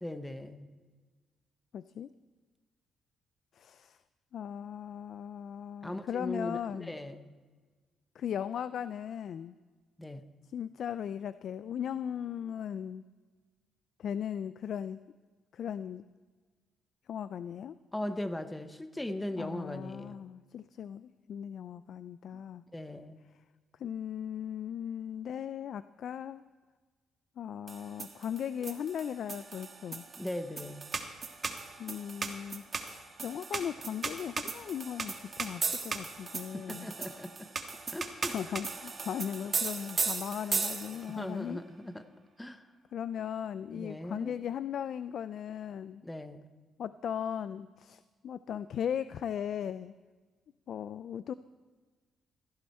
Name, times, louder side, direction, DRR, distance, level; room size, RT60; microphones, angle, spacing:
voice 1, 0.0-0.7 5.8-7.3 10.0-10.2 17.9-20.2 22.7-23.2 30.2-30.9 36.7-37.5 37.9-38.4 41.1-42.0 42.4-42.6 43.7-44.4 46.0-46.5, left 1 dB, 10° left, 10 dB, 0.9 m, -39 dB
voice 2, 1.7-2.1 3.5-4.0 4.3-6.9 8.2-9.6 10.5-13.0 14.0-15.0 15.5-16.0 17.1-17.7 19.4-22.6 23.8-26.4 27.4-30.1 31.8-36.9 38.3-41.6 42.9-46.0 46.8-49.9 50.7-51.3, left 9 dB, 65° left, 15 dB, 0.3 m, -38 dB
sound 1, 27.7-41.2, right 4 dB, 35° right, 1.3 m, -37 dB
16.0 x 12.5 x 4.3 m, 1.4 s
cardioid pair, 90°, 0 cm